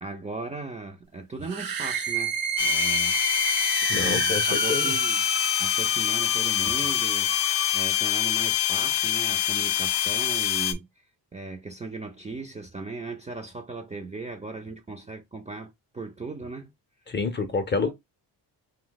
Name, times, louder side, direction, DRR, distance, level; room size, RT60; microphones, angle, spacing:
voice 1, 0.0-3.2 3.9-5.2 5.6-7.4 7.7-11.0 11.3-16.7 17.8-17.9, right 3 dB, 15° right, 0.4 m, -37 dB
sound 1, 1.4-8.0, right 7 dB, 55° right, 0.6 m, -31 dB
sound 2, 2.6-10.7, left 11 dB, 75° left, 0.6 m, -25 dB
voice 2, 3.9-4.9 17.1-17.9, left 4 dB, 25° left, 0.6 m, -28 dB
2.7 x 2.1 x 3.9 m
cardioid pair, 105°, 41 cm